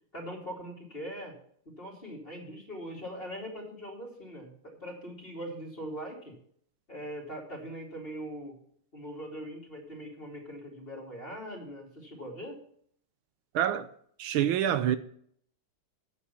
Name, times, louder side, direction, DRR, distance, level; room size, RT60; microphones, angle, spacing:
voice 1, 0.1-1.3 1.6-6.4 6.9-8.6 8.9-12.6, equal, 25° left, 2.8 m, -41 dB
voice 2, 13.5-13.9 14.2-15.0, right 10 dB, 80° right, 1.5 m, -26 dB
8.9 x 7.5 x 6.8 m
omnidirectional pair, 2.3 m